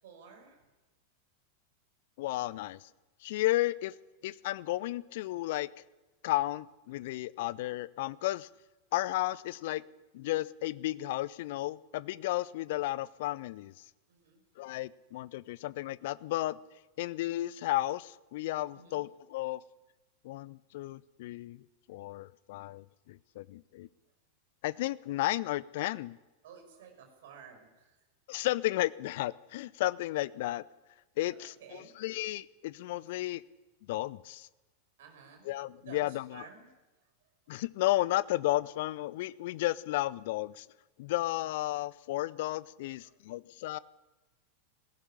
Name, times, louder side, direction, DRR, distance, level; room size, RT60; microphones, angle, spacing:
voice 1, 0.0-0.6 14.1-14.4 18.7-19.0 26.4-28.0 31.3-31.9 35.0-36.7 43.0-43.1, right 6 dB, 55° right, 4 dB, 5.7 m, -53 dB
voice 2, 2.2-2.9 3.2-3.9 4.2-5.7 6.2-8.5 8.9-9.8 10.1-13.8 14.6-16.6 17.0-19.6 20.2-23.9 24.6-26.2 28.3-30.6 31.2-33.4 33.9-34.5 35.4-36.5 37.5-40.7 41.0-43.8, left 16 dB, 50° left, 21 dB, 0.6 m, -33 dB
19.0 x 16.0 x 10.0 m, 1.1 s
figure-of-eight pair, 90°, 0 cm